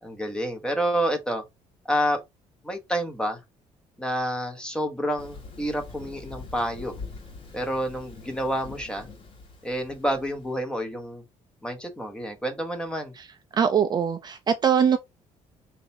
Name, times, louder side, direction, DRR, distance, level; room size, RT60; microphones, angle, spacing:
voice 1, 0.0-1.4 1.9-2.2 2.6-3.4 4.0-6.9 7.5-9.1 9.6-11.2 11.6-13.1, equal, 5° left, 1.1 m, -28 dB
Thunder, 5.2-10.6, left 4 dB, 45° left, 1.9 m, -44 dB
voice 2, 13.5-15.0, right 7 dB, 35° right, 0.5 m, -22 dB
3.9 x 2.7 x 4.1 m
cardioid pair, 140°, 13 cm